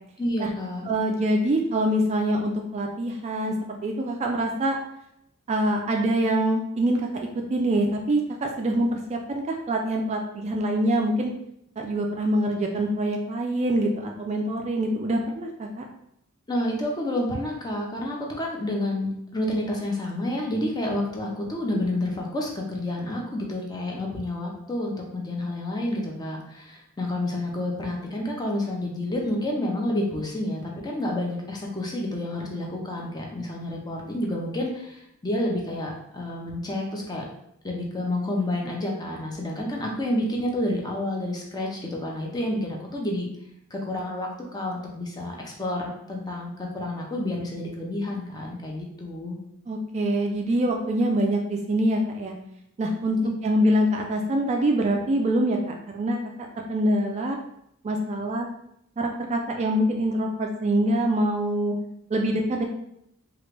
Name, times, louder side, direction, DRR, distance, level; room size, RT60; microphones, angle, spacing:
voice 1, 0.2-0.9 16.5-37.3 37.6-43.3 43.7-49.4, left 1 dB, 20° left, -1 dB, 0.6 m, -29 dB
voice 2, 0.9-4.8 5.5-11.3 11.8-15.8 49.7-52.3 52.8-53.2 53.4-55.6 55.9-56.2 56.7-57.4 57.8-58.5 59.0-61.8 62.1-62.6, right 1 dB, 30° right, 2 dB, 0.3 m, -25 dB
3.1 x 2.4 x 3.2 m, 0.76 s
head